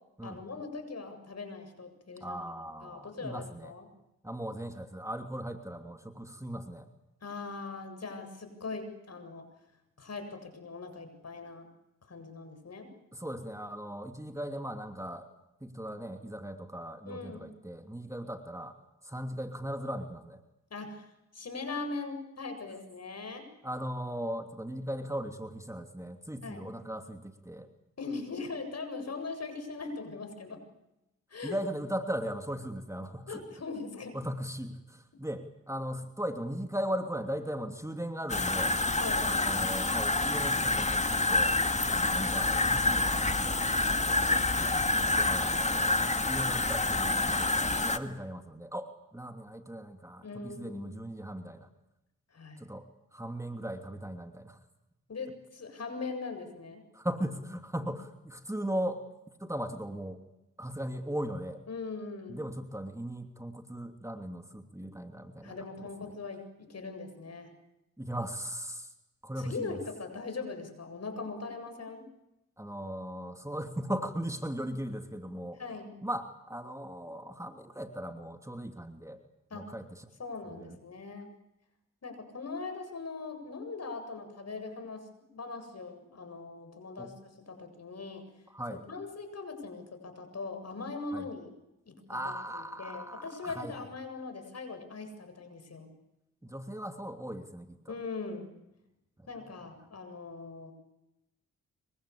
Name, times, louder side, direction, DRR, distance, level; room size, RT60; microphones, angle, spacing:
voice 1, 0.2-2.5 2.8-3.8 7.2-9.5 10.0-11.7 12.1-12.9 17.0-17.5 20.7-21.1 21.3-23.5 26.4-26.7 28.0-30.6 31.3-31.6 33.3-34.2 39.0-39.7 41.8-42.2 44.1-45.3 50.2-51.0 52.3-52.6 55.1-56.8 57.8-57.9 61.7-62.5 64.8-64.9 65.4-67.5 69.4-72.1 75.6-76.0 79.5-79.7 80.2-81.3 82.0-88.2 88.7-91.5 91.9-95.9 97.9-98.5 99.3-100.7, left 4 dB, 55° left, 7 dB, 7.7 m, -41 dB
voice 2, 2.2-3.7 4.2-6.9 13.1-15.3 15.6-18.8 19.0-20.4 23.6-27.7 31.4-33.6 34.1-38.8 39.2-41.5 42.0-43.3 45.0-51.7 52.6-52.8 53.1-54.6 56.9-59.0 59.4-60.2 60.6-61.6 62.3-66.1 68.0-68.9 69.2-69.8 72.6-75.6 76.0-79.2 79.5-80.1 80.5-80.8 87.0-87.1 88.5-88.8 91.1-91.3 92.1-93.8 96.4-97.9 99.4-99.5, equal, 10° right, 6 dB, 2.9 m, -38 dB
sound 1, 38.3-48.0, left 2 dB, 20° left, 2.3 m, -27 dB
26.5 x 23.5 x 8.6 m, 0.91 s
supercardioid pair, 50°, 32 cm